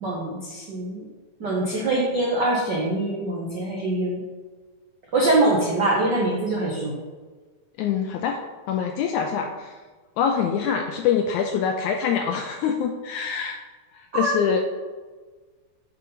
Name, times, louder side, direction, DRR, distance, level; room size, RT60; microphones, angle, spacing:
voice 1, 0.0-1.0 1.4-4.2 5.1-7.0 14.1-14.3, right 2 dB, 85° right, -4 dB, 0.9 m, -23 dB
voice 2, 7.8-8.4 8.7-9.7 10.2-13.6 13.9-14.6, left 7 dB, 80° left, 3 dB, 1.7 m, -25 dB
8.4 x 3.9 x 5.6 m, 1.4 s
omnidirectional pair, 3.9 m